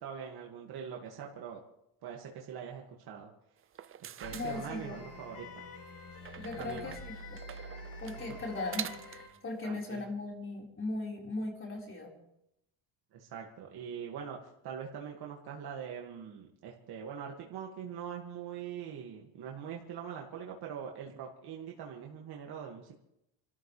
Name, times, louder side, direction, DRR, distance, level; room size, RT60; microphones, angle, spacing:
voice 1, 0.0-1.6 2.0-3.3 4.0-5.7 6.6-6.9 9.6-10.1 13.1-14.4 14.6-22.9, right 7 dB, 55° right, 0 dB, 2.2 m, -43 dB
sound 1, 3.6-5.2 6.2-9.4, right 10 dB, 30° right, 0.5 m, -45 dB
sound 2, 4.2-9.3, left 2 dB, 70° left, 7.9 m, -47 dB
voice 2, 4.3-5.0 6.4-7.4 8.0-12.1, left 2 dB, 25° left, -1 dB, 4.8 m, -38 dB
29.0 x 13.5 x 3.4 m, 0.81 s
cardioid pair, 130°, 44 cm